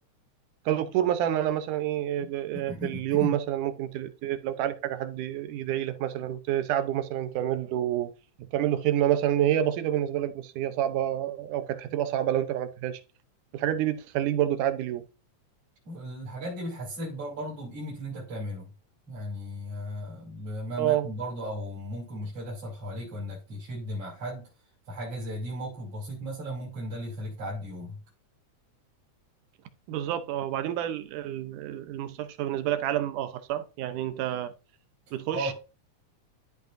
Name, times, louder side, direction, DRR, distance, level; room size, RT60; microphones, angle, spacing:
voice 1, 0.7-8.1 8.5-13.0 13.5-15.1 20.8-21.1 29.9-34.5 35.1-35.5, right 11 dB, 80° right, 2.3 m, -28 dB
voice 2, 2.2-3.4 15.9-18.7 19.1-24.4 24.9-28.0 35.1-35.5, equal, 50° right, 3.9 m, -36 dB
13.5 x 5.2 x 2.6 m
omnidirectional pair, 3.6 m